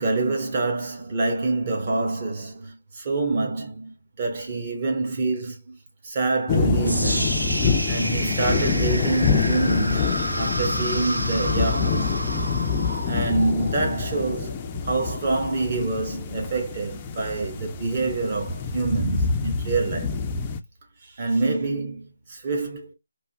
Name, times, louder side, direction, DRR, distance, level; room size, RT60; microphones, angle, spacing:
voice 1, 0.0-5.8 6.0-7.5 7.9-12.1 13.0-14.6 14.8-20.2 21.0-22.9, right 3 dB, 35° right, 1.0 m, -26 dB
sound 1, 6.5-20.6, left 4 dB, 20° left, 0.4 m, -26 dB
sound 2, 6.8-14.9, right 1 dB, 90° right, 0.9 m, -31 dB
3.3 x 2.2 x 2.7 m
figure-of-eight pair, 165°, 0 cm